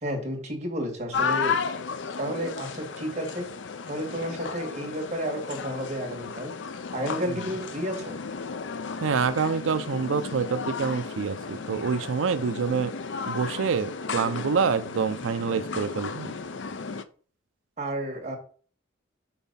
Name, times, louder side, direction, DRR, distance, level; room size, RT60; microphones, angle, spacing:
voice 1, 0.0-1.6 2.2-3.5 3.9-6.5 6.9-8.2 17.8-18.4, equal, 35° right, 0 dB, 1.9 m, -31 dB
sound 1, 1.1-17.0, left 5 dB, 70° left, 0.6 m, -34 dB
voice 2, 9.0-12.9 13.3-16.3, right 6 dB, 90° right, 12 dB, 0.4 m, -27 dB
5.7 x 4.1 x 5.5 m, 0.42 s
head